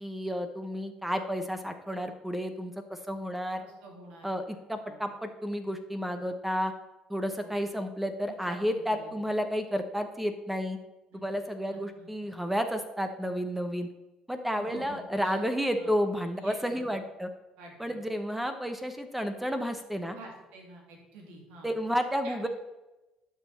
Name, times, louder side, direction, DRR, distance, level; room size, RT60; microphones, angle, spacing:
voice 1, 0.0-3.6 4.2-6.7 7.1-10.8 11.2-13.9 14.3-17.3 17.8-20.2 21.6-22.5, equal, 5° right, 7 dB, 0.9 m, -31 dB
voice 2, 3.6-4.3 4.9-5.0 7.3-7.6 8.3-9.1 11.1-11.4 11.7-12.1 14.5-15.4 15.8-15.9 16.3-16.9 17.6-18.0 20.1-21.7 22.2-22.5, right 2 dB, 80° right, 1 dB, 2.6 m, -49 dB
11.5 x 5.5 x 4.3 m, 1.0 s
supercardioid pair, 70°, 2 cm